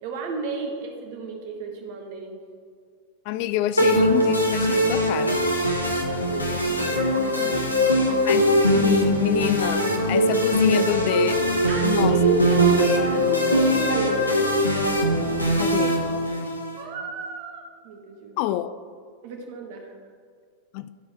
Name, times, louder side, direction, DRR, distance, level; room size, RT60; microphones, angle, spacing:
voice 1, 0.0-2.4 6.3-8.1 10.8-10.9 11.7-14.4 16.8-18.4 19.2-19.9, right 3 dB, 50° right, 1.4 m, -32 dB
voice 2, 3.3-5.5 8.2-11.3 11.8-12.2 15.6-16.0 18.4-18.8 20.7-20.9, left 12 dB, 45° left, 0.3 m, -27 dB
sound 1, 3.8-16.8, equal, 85° left, 1.0 m, -21 dB
12.5 x 4.6 x 4.3 m
figure-of-eight pair, 90°, 0 cm